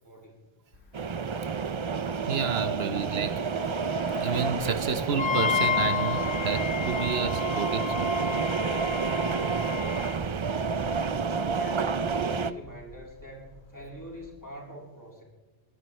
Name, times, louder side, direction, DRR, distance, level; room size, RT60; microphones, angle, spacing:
voice 1, 0.0-0.4 10.7-15.2, equal, 15° left, 3.6 m, -43 dB
sound 1, 0.7-14.4, left 4 dB, 85° left, 1.6 m, -49 dB
sound 2, 0.9-12.5, right 5 dB, 40° right, 0.4 m, -29 dB
voice 2, 2.3-3.7 4.2-8.5 9.6-9.7, right 6 dB, 70° right, 1.1 m, -31 dB
Wind instrument woodwind instrument, 5.2-10.1, left 9 dB, 50° left, 0.9 m, -31 dB
22.5 x 10.5 x 3.2 m
omnidirectional pair, 1.1 m